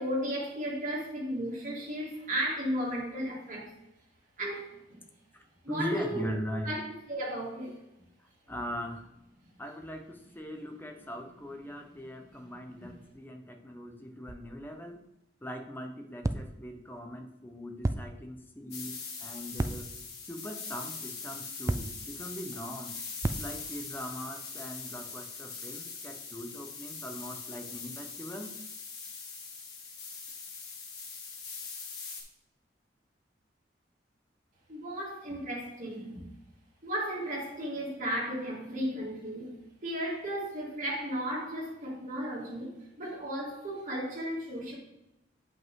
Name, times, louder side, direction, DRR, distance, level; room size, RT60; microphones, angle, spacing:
voice 1, 0.0-3.7 4.4-5.0 5.6-6.3 6.6-7.8 34.7-36.2 36.8-44.7, equal, 45° right, -4 dB, 2.6 m, -35 dB
voice 2, 5.3-6.7 8.5-9.1 9.6-15.0 15.4-19.9 20.2-22.9 23.4-28.6, equal, 10° left, 4 dB, 0.9 m, -40 dB
sound 1, 14.3-14.8 16.2-16.9 17.8-18.4 19.6-20.2 21.7-22.2 23.2-23.8, right 2 dB, 15° right, 0.3 m, -34 dB
sound 2, 18.7-32.2, left 4 dB, 60° left, 1.9 m, -42 dB
8.3 x 5.4 x 3.7 m, 0.86 s
head